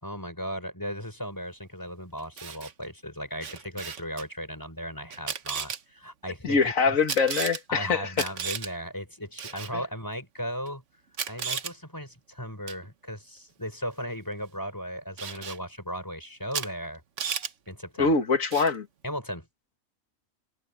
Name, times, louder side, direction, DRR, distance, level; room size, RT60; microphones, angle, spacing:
voice 1, 0.0-7.0 7.7-10.8 11.3-17.0 17.7-18.1 19.0-19.5, equal, 15° left, 4.1 m, -36 dB
Camera, 2.2-2.7 3.4-4.2 5.1-5.8 7.1-7.6 8.1-8.7 9.4-9.7 10.7-10.8 11.1-11.7 12.7-12.9 15.2-15.6 16.5-16.7 17.0-17.5 18.5-18.8, right 7 dB, 60° right, 1.4 m, -34 dB
voice 2, 6.4-8.3 9.7-9.8 18.0-18.9, left 4 dB, 70° left, 2.1 m, -24 dB
omnidirectional pair, 1.4 m